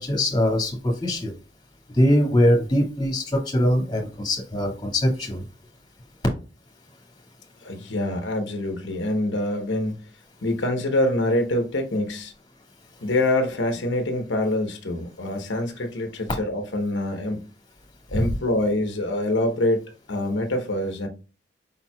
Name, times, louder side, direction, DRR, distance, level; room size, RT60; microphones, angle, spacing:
voice 1, 0.0-1.3 1.9-5.4 18.1-18.3, equal, 25° left, 1.8 m, -22 dB
voice 2, 7.6-10.0 10.4-12.3 13.0-17.5 18.1-21.1, left 1 dB, 90° left, 1.0 m, -25 dB
5.4 x 4.3 x 2.2 m
head